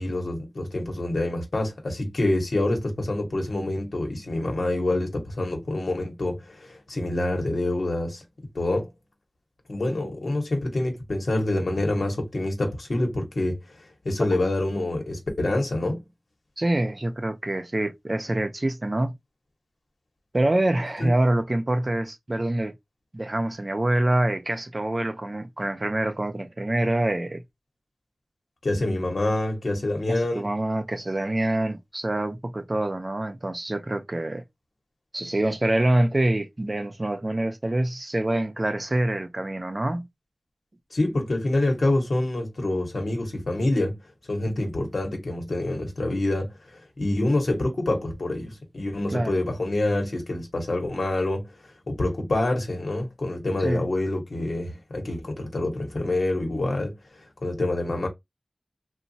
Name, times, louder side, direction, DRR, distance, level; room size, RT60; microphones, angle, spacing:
voice 1, 0.0-8.2 8.5-8.9 9.7-13.6 14.0-16.0 21.0-21.1 28.6-30.5 40.9-44.0 44.3-51.5 51.9-57.0 57.4-58.1, left 2 dB, 80° left, 1.0 m, -26 dB
voice 2, 16.6-19.1 20.3-22.7 23.1-27.4 30.1-34.4 35.1-40.1 49.1-49.3 53.6-53.9, right 1 dB, 45° right, 0.5 m, -25 dB
2.9 x 2.2 x 2.7 m
wide cardioid pair, 45°, 0 cm